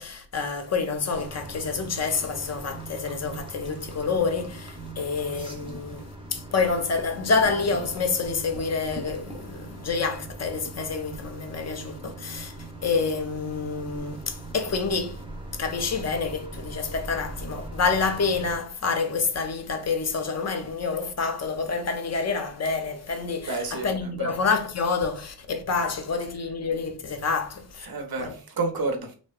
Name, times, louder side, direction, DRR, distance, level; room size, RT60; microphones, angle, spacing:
voice 1, 0.0-12.5 12.8-15.2 15.6-27.9 28.2-28.4, left 4 dB, 40° left, 0.5 m, -28 dB
sound 1, 1.1-18.6, right 2 dB, 10° right, 0.6 m, -40 dB
voice 2, 23.4-24.3 27.8-29.1, right 3 dB, 55° right, 0.7 m, -30 dB
2.7 x 2.1 x 2.2 m
wide cardioid pair, 85°, 43 cm